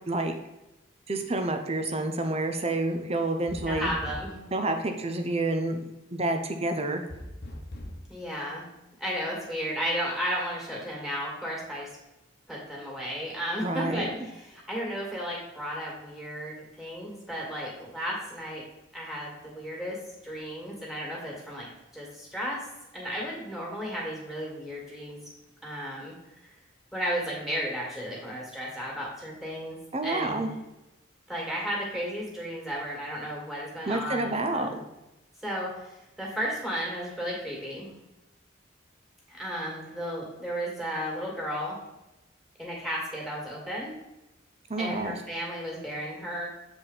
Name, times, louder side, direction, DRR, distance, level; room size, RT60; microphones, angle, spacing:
voice 1, 1.1-3.9 4.5-5.8 6.1-7.0 13.6-14.1 29.9-30.5 33.9-34.7 44.7-45.2, right 2 dB, 30° right, 6 dB, 0.7 m, -28 dB
sound 1, 3.5-4.5 7.1-8.0, left 1 dB, 50° left, 1.0 m, -40 dB
voice 2, 3.7-4.5 8.1-8.7 9.0-11.9 12.5-18.6 18.9-20.0 20.2-21.7 21.9-22.6 22.9-25.2 25.6-26.2 26.4-26.5 26.9-29.8 30.0-30.5 31.3-34.8 35.4-37.9 39.3-41.8 42.6-43.9 44.8-46.5, equal, ahead, -3 dB, 2.2 m, -34 dB
7.6 x 4.9 x 4.0 m, 0.98 s
head